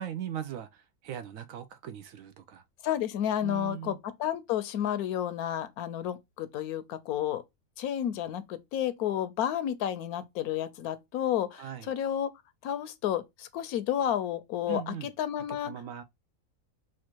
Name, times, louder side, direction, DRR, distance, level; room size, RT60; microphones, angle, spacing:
voice 1, 0.0-2.6 3.4-4.0 11.6-11.9 14.7-15.1 15.6-16.0, right 9 dB, 70° right, 0.9 m, -39 dB
voice 2, 2.8-7.4 7.8-12.3 12.6-15.7, left 10 dB, 80° left, 1.1 m, -31 dB
4.3 x 2.4 x 4.4 m
omnidirectional pair, 1.6 m